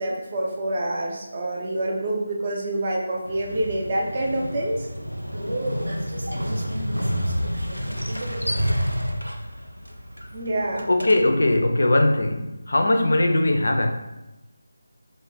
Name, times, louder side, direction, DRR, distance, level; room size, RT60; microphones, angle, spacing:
voice 1, 0.0-4.9 10.3-10.9, right 1 dB, 30° right, 0.5 m, -27 dB
Motorcycle, 3.2-11.6, equal, 85° right, 0.5 m, -29 dB
voice 2, 5.3-8.9, right 1 dB, 70° right, 1.0 m, -35 dB
voice 3, 10.9-13.9, left 1 dB, 55° left, 0.4 m, -20 dB
2.3 x 2.0 x 3.8 m
figure-of-eight pair, 160°, 0 cm